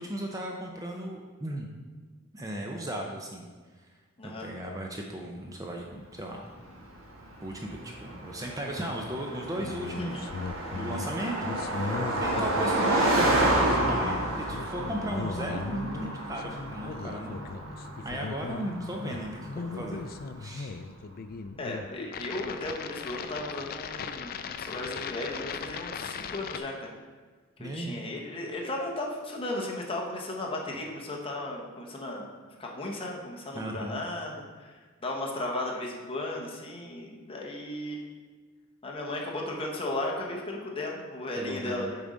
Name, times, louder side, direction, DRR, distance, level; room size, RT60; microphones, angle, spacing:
voice 1, 0.0-1.7 2.3-3.5 4.2-6.4 7.4-10.2 10.7-17.5 18.0-20.0 20.4-20.8 27.6-28.0 30.7-30.8 33.5-34.0 41.4-41.9, right 1 dB, 15° right, 1 dB, 0.5 m, -36 dB
Car passing by, 6.6-20.3, right 1 dB, 80° right, 1.4 m, -30 dB
sound 1, 9.6-26.6, left 5 dB, 45° left, 0.4 m, -38 dB
voice 2, 21.6-26.9 27.6-32.3 32.6-34.3 34.6-38.1 38.8-42.0, left 1 dB, 25° left, -1 dB, 1.0 m, -35 dB
6.9 x 4.0 x 5.0 m, 1.4 s
head